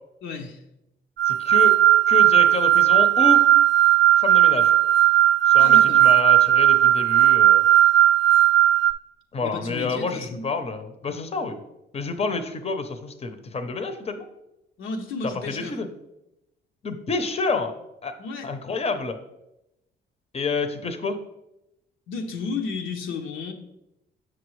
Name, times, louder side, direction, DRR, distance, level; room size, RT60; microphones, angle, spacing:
voice 1, 0.2-0.6 5.6-6.0 9.4-10.5 14.8-15.8 18.2-18.5 22.1-23.5, left 4 dB, 80° left, 3 dB, 0.8 m, -32 dB
sound 1, 1.2-8.9, right 12 dB, 65° right, 0.6 m, -16 dB
voice 2, 1.3-1.7 2.1-3.4 4.2-4.7 5.5-7.6 9.3-11.6 11.9-14.3 15.2-15.9 16.8-17.7 18.0-18.1 18.4-19.2 20.3-21.2, left 4 dB, 30° left, 8 dB, 0.7 m, -28 dB
7.3 x 6.1 x 3.1 m, 0.89 s
cardioid pair, 90°, 20 cm